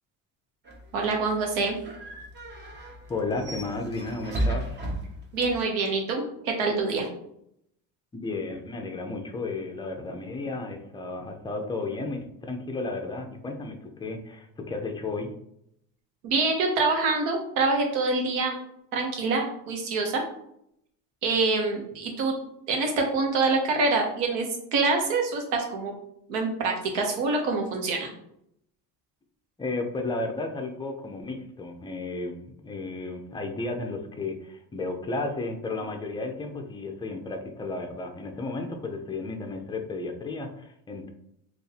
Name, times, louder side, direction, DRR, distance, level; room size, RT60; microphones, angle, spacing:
sound 1, 0.7-5.6, right 1 dB, 25° right, 0.8 m, -34 dB
voice 1, 0.9-1.8 5.3-7.1 16.2-18.6 18.9-20.2 21.2-22.3 22.7-24.4 24.7-25.9 26.3-28.1, right 3 dB, 80° right, 2 dB, 1.1 m, -25 dB
voice 2, 3.1-4.8 8.1-15.3 29.6-41.1, left 3 dB, 10° left, 4 dB, 0.4 m, -33 dB
2.6 x 2.5 x 4.0 m, 0.74 s
supercardioid pair, 100°, 42 cm